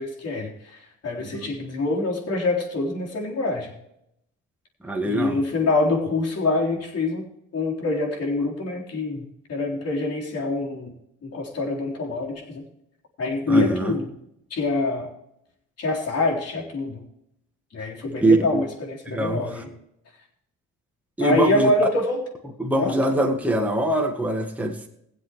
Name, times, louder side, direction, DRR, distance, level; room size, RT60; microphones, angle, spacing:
voice 1, 0.0-3.7 5.0-7.2 7.5-10.9 11.2-12.7 13.2-14.1 14.5-15.1 15.8-17.0 17.7-19.7 21.2-22.2 22.8-23.0, left 2 dB, 55° left, -1 dB, 3.9 m, -25 dB
voice 2, 4.8-5.4 13.5-13.9 18.2-18.6 19.1-19.6 21.2-21.7 22.6-24.9, right 1 dB, 5° right, 2 dB, 1.7 m, -23 dB
21.0 x 7.8 x 3.1 m, 0.78 s
cardioid pair, 90°, 30 cm